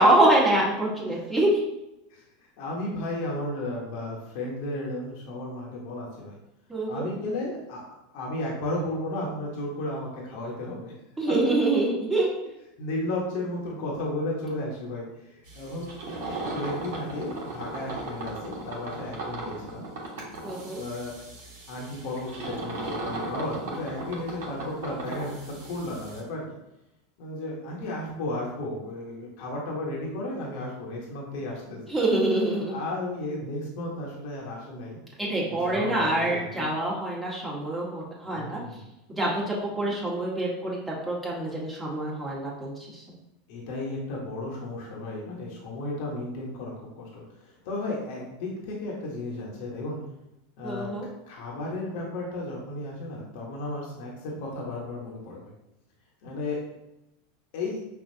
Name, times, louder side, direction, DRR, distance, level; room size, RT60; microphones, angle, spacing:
voice 1, 0.0-1.6 6.7-7.1 11.2-12.3 20.4-20.8 31.9-32.8 35.2-38.6 39.1-43.0 50.6-51.1, right 1 dB, 10° right, -5 dB, 1.3 m, -25 dB
voice 2, 2.6-6.4 6.9-7.8 8.1-10.9 12.8-15.9 16.4-19.8 20.8-21.1 21.7-26.4 27.2-31.9 32.7-35.0 35.5-36.7 38.2-38.8 39.8-39.9 43.5-50.0 50.6-50.9 51.3-55.5 56.2-56.6 57.5-57.8, left 1 dB, 60° left, -3 dB, 1.1 m, -34 dB
sound 1, 15.5-26.2, right 2 dB, 65° right, 1.3 m, -37 dB
5.5 x 2.4 x 2.7 m, 0.90 s
hypercardioid pair, 90°, 0 cm